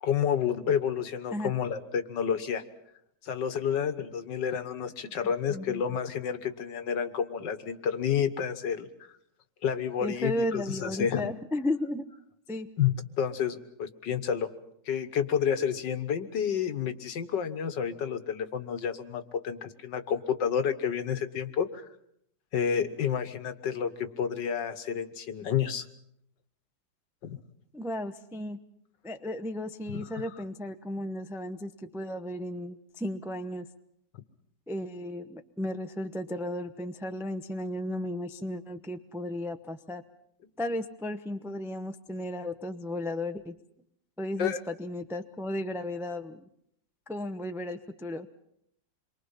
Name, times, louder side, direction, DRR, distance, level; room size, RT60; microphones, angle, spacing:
voice 1, 0.0-2.6 3.2-8.9 9.6-11.3 12.8-14.5 14.9-21.9 22.5-25.9 27.2-27.4 29.9-30.1 44.4-44.6, left 8 dB, 75° left, 10 dB, 1.9 m, -30 dB
voice 2, 5.5-5.8 10.0-12.0 12.5-12.7 27.7-28.6 29.0-33.7 34.7-40.0 40.6-43.5 44.2-46.4 47.1-48.3, left 1 dB, ahead, 7 dB, 0.5 m, -34 dB
27.5 x 23.0 x 5.7 m, 0.75 s
omnidirectional pair, 2.0 m